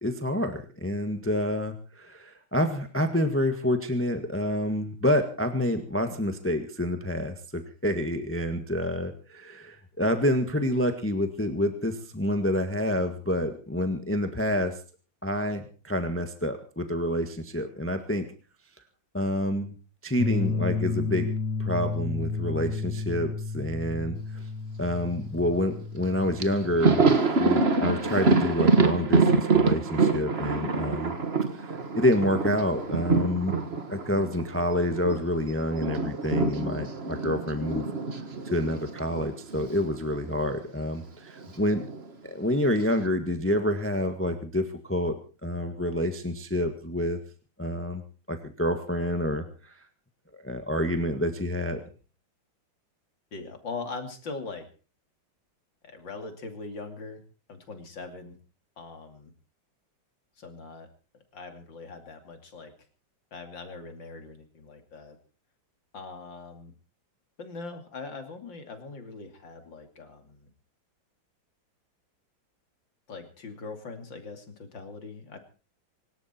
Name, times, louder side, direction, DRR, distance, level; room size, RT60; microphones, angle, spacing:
voice 1, 0.0-14.8 15.2-18.3 19.1-19.7 20.0-21.3 21.6-24.5 24.8-31.1 31.5-33.6 33.9-37.8 38.4-41.8 42.2-45.2 45.4-47.2 47.6-48.0 48.3-49.8 50.4-51.8, left 1 dB, 5° left, 7 dB, 1.5 m, -28 dB
sound 1, 20.2-26.8, left 4 dB, 90° left, 1.9 m, -32 dB
Thunder, 26.0-26.1 26.4-35.2 35.5-39.8 40.0-40.2 41.4-42.1, right 4 dB, 35° right, 1.7 m, -25 dB
voice 2, 53.3-54.7 55.8-57.2 57.5-58.3 58.8-59.3 60.4-60.9 61.3-62.7 63.3-65.2 65.9-66.7 67.4-70.5 73.1-75.4, left 3 dB, 70° left, 6 dB, 3.4 m, -41 dB
25.5 x 12.5 x 4.5 m, 0.38 s
omnidirectional pair, 2.1 m